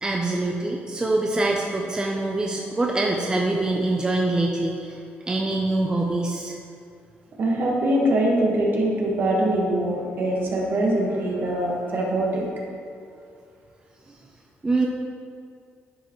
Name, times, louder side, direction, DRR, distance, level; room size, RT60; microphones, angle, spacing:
voice 1, 0.0-5.0 5.3-6.6 14.6-14.9, right 2 dB, 20° right, -1 dB, 0.6 m, -24 dB
voice 2, 7.4-12.4 12.9-13.2, right 1 dB, 55° right, -2 dB, 1.5 m, -23 dB
11.0 x 5.1 x 3.1 m, 2.3 s
cardioid pair, 110°, 4 cm